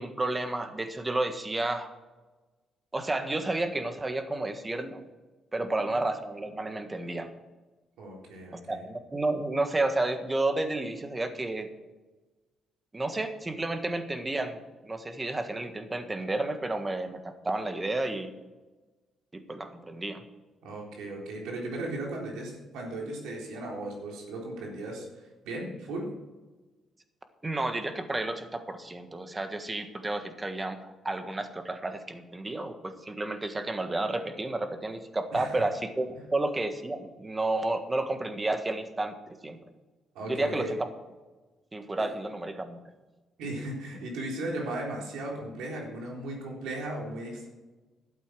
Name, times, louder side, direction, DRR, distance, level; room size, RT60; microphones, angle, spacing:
voice 1, 0.0-1.9 2.9-5.1 5.5-7.3 8.5-11.7 12.9-14.6 14.8-18.3 19.3-20.2 27.4-39.1 39.4-39.6 40.3-40.8 41.7-42.8, right 2 dB, 20° right, 8 dB, 1.5 m, -31 dB
voice 2, 8.0-8.8 20.6-26.1 35.3-35.5 40.1-40.7 43.4-47.5, right 1 dB, 90° right, -1 dB, 3.8 m, -36 dB
12.0 x 8.4 x 6.2 m, 1.2 s
cardioid pair, 90°, 0 cm